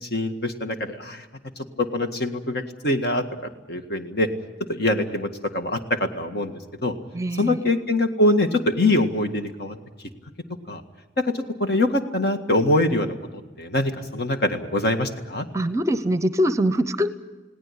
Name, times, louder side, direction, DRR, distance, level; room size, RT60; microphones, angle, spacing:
voice 1, 0.0-1.3 1.8-3.3 3.7-4.3 4.7-6.9 7.4-9.8 10.7-10.8 11.2-13.1 13.6-15.5, left 1 dB, 55° left, 6 dB, 1.9 m, -23 dB
voice 2, 7.1-7.6 15.5-17.1, equal, 15° right, 12 dB, 0.8 m, -23 dB
20.0 x 17.5 x 10.0 m, 1.2 s
head